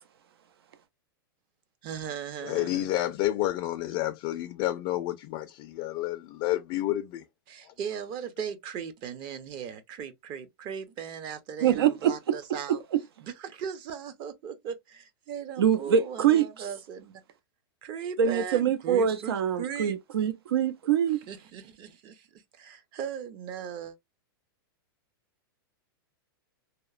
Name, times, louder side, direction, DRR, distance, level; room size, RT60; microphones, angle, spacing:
voice 1, 1.8-2.9 7.5-12.8 13.2-17.2 17.8-19.9 21.3-24.0, right 7 dB, 35° right, 0.6 m, -38 dB
voice 2, 2.4-7.2, left 15 dB, 40° left, 0.3 m, -30 dB
voice 3, 11.6-12.4 15.6-16.7 18.2-21.2, right 8 dB, 85° right, 0.5 m, -24 dB
2.8 x 2.0 x 2.3 m
hypercardioid pair, 130°, 13 cm